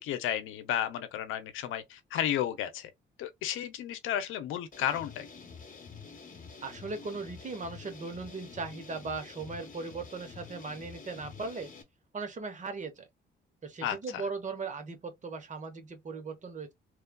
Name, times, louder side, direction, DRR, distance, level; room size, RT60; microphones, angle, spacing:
voice 1, 0.0-2.9 3.2-5.3 13.8-14.0, left 10 dB, 85° left, 0.6 m, -32 dB
sound 1, 4.7-11.8, left 5 dB, 45° left, 1.0 m, -48 dB
voice 2, 6.6-11.7 12.1-13.1 13.6-16.7, right 4 dB, 40° right, 1.0 m, -38 dB
3.1 x 2.3 x 2.2 m
cardioid pair, 90°, 20 cm